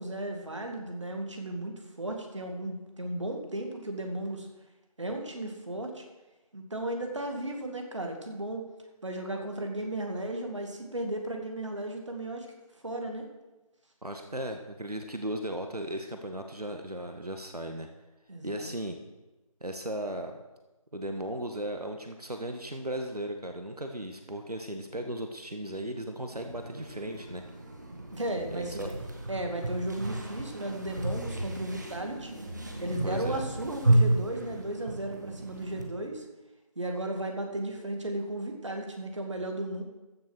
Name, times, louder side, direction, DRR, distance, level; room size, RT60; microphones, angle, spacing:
voice 1, 0.0-4.5 5.0-6.0 6.5-8.6 9.0-12.5 12.8-13.2 18.3-18.7 28.1-28.9 29.3-32.3 32.8-36.2 36.8-39.8, right 1 dB, 50° right, 3 dB, 2.2 m, -35 dB
voice 2, 14.0-17.9 18.4-19.0 19.6-20.3 20.9-27.4 28.5-28.9 33.0-33.4, right 1 dB, 85° right, 5 dB, 1.6 m, -36 dB
sound 1, 26.3-35.9, right 1 dB, 30° right, 1.3 m, -32 dB
14.5 x 6.9 x 6.2 m, 1.1 s
figure-of-eight pair, 170°, 19 cm